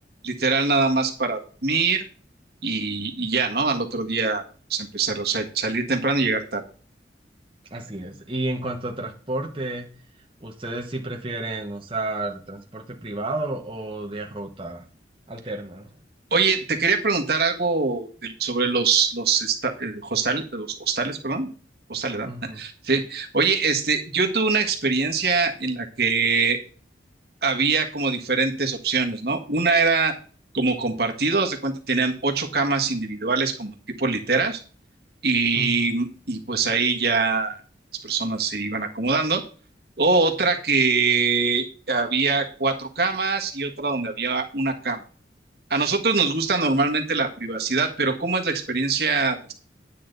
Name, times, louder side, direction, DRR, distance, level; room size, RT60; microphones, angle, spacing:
voice 1, 0.2-2.0 2.6-4.4 4.7-6.6 16.3-21.5 21.9-26.6 27.4-30.1 30.5-34.6 35.2-37.6 38.0-39.4 40.0-45.0 45.7-49.5, right 4 dB, 60° right, 4 dB, 1.7 m, -23 dB
voice 2, 7.7-9.9 10.4-14.8 15.3-16.0 22.3-22.6 35.5-35.8, right 2 dB, 30° right, 0 dB, 1.3 m, -31 dB
10.0 x 8.4 x 4.0 m, 0.40 s
head